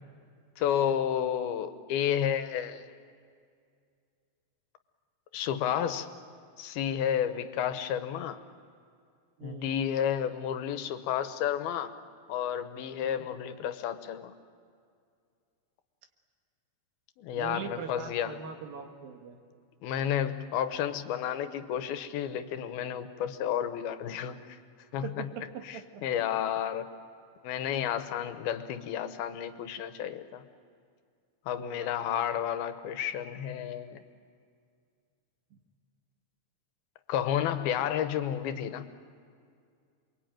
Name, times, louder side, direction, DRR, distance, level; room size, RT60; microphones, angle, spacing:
voice 1, 0.6-2.9 5.3-6.1 6.6-8.4 9.4-12.0 12.3-14.3 17.2-18.3 19.8-24.6 24.9-25.3 25.6-26.9 27.4-30.4 31.5-34.0 37.1-38.9, left 9 dB, 90° left, 10 dB, 3.0 m, -31 dB
voice 2, 9.4-9.8 13.0-13.3 17.3-19.4 25.0-26.2 28.1-28.4 31.6-32.1 35.5-35.6, right 7 dB, 75° right, 5 dB, 3.4 m, -42 dB
28.5 x 23.0 x 9.1 m, 2.3 s
omnidirectional pair, 4.3 m